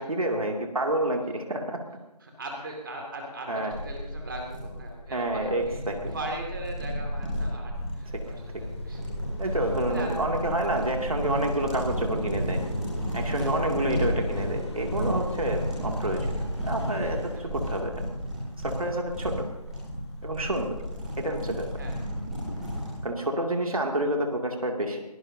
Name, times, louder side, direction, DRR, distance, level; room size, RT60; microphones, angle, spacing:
voice 1, 0.0-1.8 3.5-3.7 5.1-6.1 8.1-8.2 8.5-8.6 9.4-12.6 13.1-18.0 18.6-19.5 20.2-20.8 21.2-21.7 23.0-25.0, right 1 dB, 55° right, 2 dB, 2.5 m, -29 dB
voice 2, 2.2-5.8 6.1-9.0 9.4-9.5 9.9-10.4 13.2-13.5 17.3-17.5 21.8-21.9, right 1 dB, 30° right, 1 dB, 2.3 m, -39 dB
sound 1, 3.7-23.0, equal, ahead, 2.7 m, -32 dB
Car passing by, 7.7-20.2 20.5-23.0, left 2 dB, 40° left, 1.6 m, -42 dB
22.5 x 17.5 x 2.8 m, 0.99 s
figure-of-eight pair, 160°, 21 cm